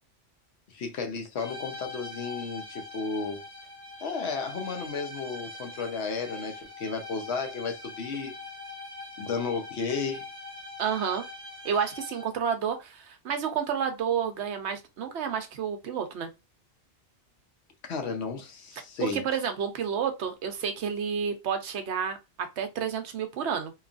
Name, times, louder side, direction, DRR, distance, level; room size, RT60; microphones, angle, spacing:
voice 1, 0.7-3.4 4.0-8.3 9.2-10.2 17.9-19.2, left 4 dB, 65° left, 0.9 m, -33 dB
sound 1, 1.4-12.5, left 3 dB, 20° right, 1.1 m, -42 dB
voice 2, 10.8-11.2 11.6-16.3 19.0-23.7, right 7 dB, 70° right, 0.9 m, -30 dB
2.9 x 2.3 x 2.4 m
omnidirectional pair, 1.2 m